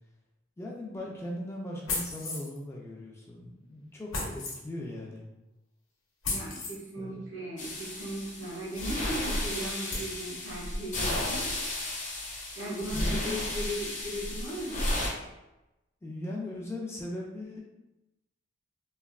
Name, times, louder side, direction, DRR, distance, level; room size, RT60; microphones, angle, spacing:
voice 1, 0.6-5.3 7.0-7.2 12.9-13.4 14.2-14.4 16.0-17.6, left 1 dB, 15° left, -3 dB, 0.3 m, -39 dB
sound 1, 1.9-2.6 4.1-4.6 6.2-6.8 8.7-8.8 9.3-9.4 9.9-10.1, left 3 dB, 85° left, 0.8 m, -34 dB
voice 2, 6.2-11.4 12.5-14.9, equal, 75° right, -8 dB, 1.5 m, -37 dB
sound 2, 7.6-15.1, left 1 dB, 40° left, 0.7 m, -33 dB
3.1 x 2.0 x 2.3 m, 0.96 s
head